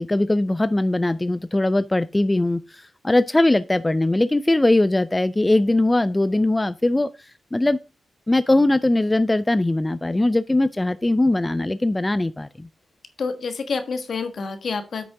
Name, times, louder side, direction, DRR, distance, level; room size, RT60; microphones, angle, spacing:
voice 1, 0.0-7.8 8.3-12.7, left 2 dB, 15° left, 0.3 m, -20 dB
voice 2, 13.2-15.1, left 4 dB, 60° left, 1.4 m, -28 dB
8.6 x 6.1 x 3.5 m
wide cardioid pair, 120°, 0 cm